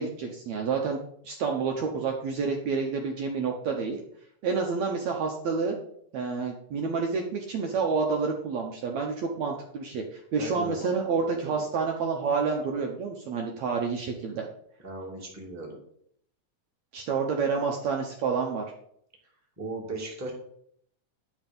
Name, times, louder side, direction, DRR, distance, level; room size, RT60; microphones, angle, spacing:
voice 1, 0.0-4.0 4.4-5.8 6.1-14.5 16.9-18.7, right 5 dB, 65° right, 2 dB, 2.0 m, -29 dB
voice 2, 10.4-10.9 11.2-11.5 14.8-15.8 19.6-20.3, right 2 dB, 5° right, -2 dB, 1.7 m, -37 dB
10.0 x 5.8 x 5.3 m, 0.68 s
omnidirectional pair, 3.9 m